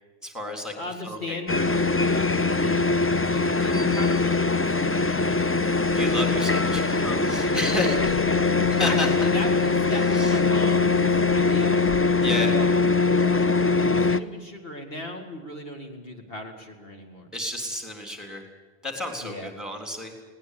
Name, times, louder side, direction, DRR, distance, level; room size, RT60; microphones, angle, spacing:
voice 1, 0.2-0.7 1.0-1.4 5.9-8.2 8.7-9.1 9.9-10.4 12.2-12.6 17.3-18.4 18.8-20.1, left 1 dB, ahead, 3 dB, 3.7 m, -31 dB
voice 2, 0.8-2.8 3.2-5.5 8.8-11.8 12.1-12.7 13.1-17.3 19.2-19.5, left 1 dB, 65° left, 3 dB, 2.5 m, -37 dB
sound 1, 1.5-14.2, left 4 dB, 15° left, 0.5 m, -22 dB
21.5 x 18.0 x 8.5 m, 1.4 s
omnidirectional pair, 1.1 m